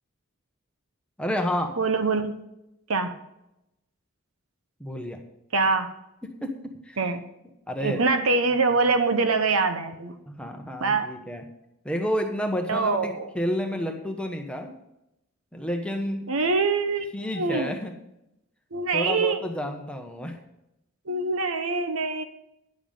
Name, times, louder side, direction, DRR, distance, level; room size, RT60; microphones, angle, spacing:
voice 1, 1.2-1.7 4.8-5.2 6.2-7.0 7.7-8.0 10.3-11.4 11.8-14.7 15.5-16.2 17.1-17.9 18.9-20.4, equal, 5° left, 3 dB, 1.1 m, -30 dB
voice 2, 1.8-2.3 2.9-3.1 5.5-5.9 7.0-7.2 7.8-10.2 10.8-11.1 12.7-13.3 16.3-17.0 17.4-17.7 18.7-19.5 21.1-22.2, right 4 dB, 75° right, 8 dB, 1.0 m, -24 dB
10.5 x 7.1 x 5.5 m, 0.86 s
head